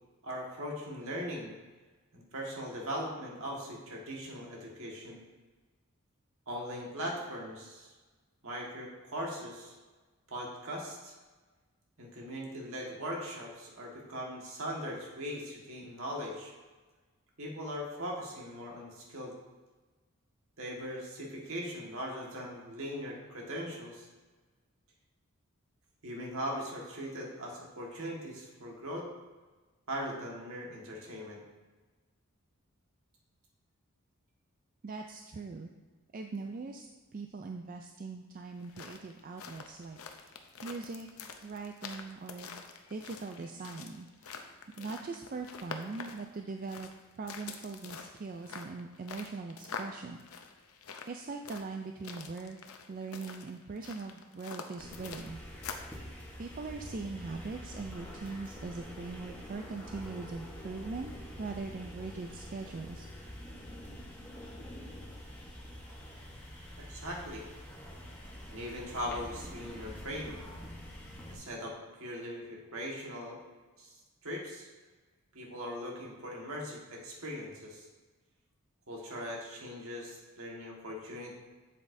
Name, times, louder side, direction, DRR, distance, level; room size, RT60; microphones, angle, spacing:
voice 1, 0.2-1.5 2.1-5.2 6.5-7.9 8.4-9.8 10.3-11.1 12.0-16.5 17.4-19.3 20.6-24.1 26.0-29.1 29.9-31.4 66.8-67.4 68.5-70.4 71.3-73.4 73.8-74.7 75.3-77.9 78.9-81.3, equal, 70° right, -2 dB, 1.6 m, -40 dB
voice 2, 34.8-35.7 36.1-36.9 37.1-44.4 44.8-46.9 47.2-50.2 51.1-52.6 52.9-55.4 56.4-61.1 61.4-63.1, right 4 dB, 40° right, 4 dB, 0.3 m, -41 dB
sound 1, 38.5-56.0, left 5 dB, 75° left, 0.6 m, -46 dB
sound 2, 54.8-71.4, equal, 10° left, 1.0 m, -46 dB
8.0 x 7.5 x 2.6 m, 1.3 s
head